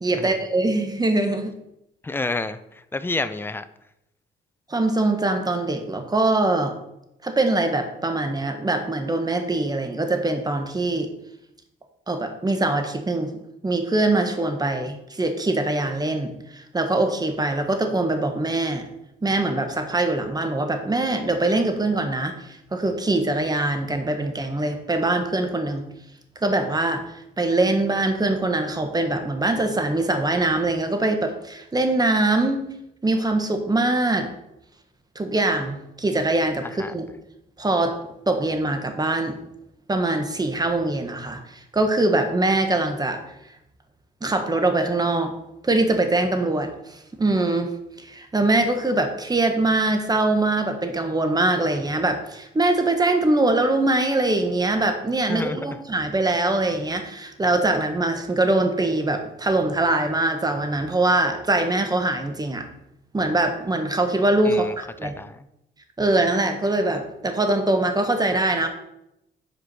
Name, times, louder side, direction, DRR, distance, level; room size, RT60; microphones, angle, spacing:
voice 1, 0.0-1.5 4.7-6.7 7.2-11.1 12.1-13.3 13.6-18.8 19.2-25.9 26.4-27.0 27.4-32.6 33.0-34.3 35.1-37.1 37.6-38.0 38.3-39.4 39.9-43.2 44.2-45.3 45.6-62.7 63.1-65.1 66.0-68.7, right 2 dB, 20° right, 6 dB, 1.5 m, -23 dB
voice 2, 2.0-2.6 2.9-3.6 36.6-36.9 55.3-55.6 64.4-64.7 65.0-65.4, left 2 dB, 10° left, 12 dB, 0.6 m, -29 dB
8.0 x 4.9 x 6.2 m, 0.83 s
cardioid pair, 90°, 20 cm